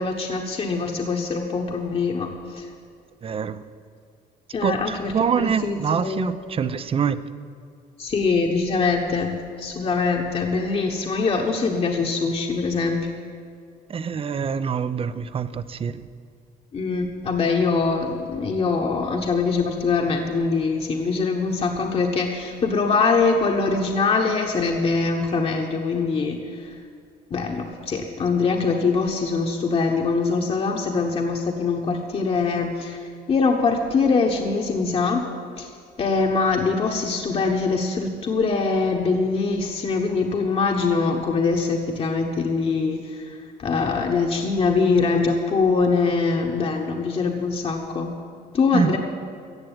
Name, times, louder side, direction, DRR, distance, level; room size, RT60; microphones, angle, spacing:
voice 1, 0.0-2.6 4.5-6.3 8.0-13.0 16.7-26.7 27.3-35.2 35.6-35.7 36.0-48.1 48.5-49.0, left 4 dB, 35° left, 2 dB, 1.2 m, -23 dB
voice 2, 3.2-3.6 4.6-7.2 13.9-16.0 48.7-49.0, right 6 dB, 35° right, 14 dB, 0.6 m, -25 dB
14.5 x 7.6 x 9.0 m, 2.2 s
cardioid pair, 110°, 17 cm